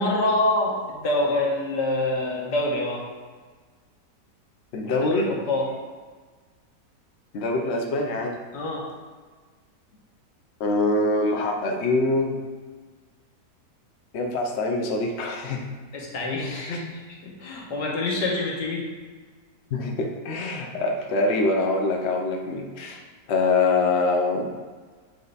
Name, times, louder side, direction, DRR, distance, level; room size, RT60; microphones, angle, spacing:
voice 1, 0.0-3.0 4.8-5.7 8.5-8.8 15.9-16.8 17.2-18.9, left 2 dB, 75° left, -2 dB, 1.7 m, -26 dB
voice 2, 4.7-5.3 7.3-8.3 10.6-12.4 14.1-15.7 16.7-16.9 19.7-23.0 23.3-24.5, left 2 dB, 55° left, 1 dB, 0.8 m, -24 dB
8.0 x 3.3 x 4.0 m, 1.4 s
omnidirectional pair, 1.8 m